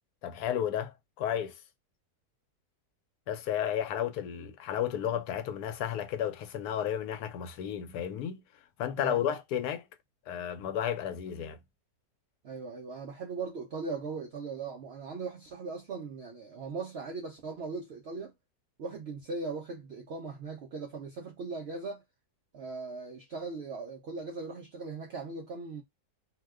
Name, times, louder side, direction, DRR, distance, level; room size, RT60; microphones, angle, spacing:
voice 1, 0.2-1.5 3.3-8.4 8.8-9.9 10.3-11.6, left 9 dB, 85° left, 1.1 m, -32 dB
voice 2, 9.0-9.4 12.4-18.3 18.8-22.0 22.5-25.8, right 4 dB, 75° right, 0.6 m, -39 dB
2.7 x 2.1 x 3.4 m
omnidirectional pair, 1.6 m